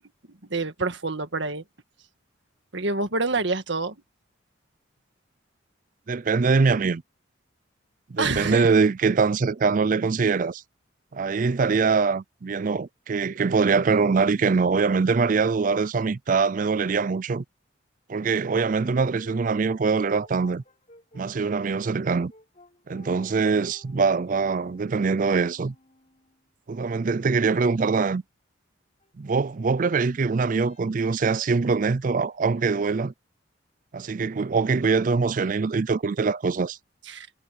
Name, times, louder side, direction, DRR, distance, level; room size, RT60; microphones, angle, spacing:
voice 1, 0.5-1.6 2.7-3.9 8.2-8.7 37.1-37.3, right 3 dB, 65° right, 1.8 m, -27 dB
voice 2, 6.1-7.0 8.1-10.6 11.1-17.4 18.1-20.6 21.1-22.3 22.9-25.7 26.7-28.2 29.2-33.1 33.9-36.8, right 4 dB, 40° right, 0.4 m, -23 dB
Brass instrument, 18.2-26.5 29.0-32.7, left 1 dB, 35° left, 5.2 m, -55 dB
head